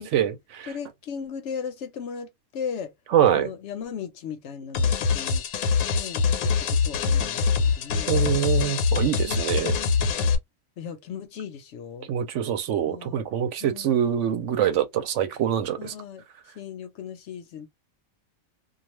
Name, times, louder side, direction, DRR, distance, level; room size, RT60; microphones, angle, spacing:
voice 1, 0.0-0.7 3.1-3.5 8.1-9.7 12.1-15.9, right 10 dB, 70° right, 0.9 m, -24 dB
voice 2, 0.7-2.9 3.3-5.4 5.9-8.2 9.2-10.3 10.8-12.1 12.8-13.3 13.6-14.0 15.8-16.2 16.5-17.7, left 7 dB, 65° left, 0.9 m, -37 dB
sound 1, 4.7-10.4, left 5 dB, 85° left, 1.1 m, -24 dB
2.3 x 2.3 x 3.0 m
omnidirectional pair, 1.4 m